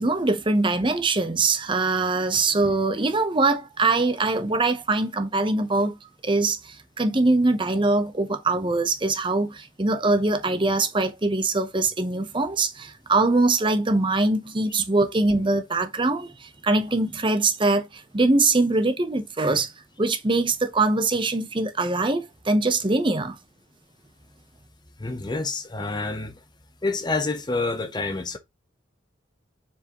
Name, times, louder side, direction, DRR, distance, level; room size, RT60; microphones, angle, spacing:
voice 1, 0.0-6.0 6.2-19.7 20.0-23.4, right 3 dB, 25° right, 0.8 m, -23 dB
voice 2, 25.0-26.4 26.8-28.4, left 3 dB, 20° left, 0.7 m, -28 dB
7.0 x 4.8 x 3.0 m
head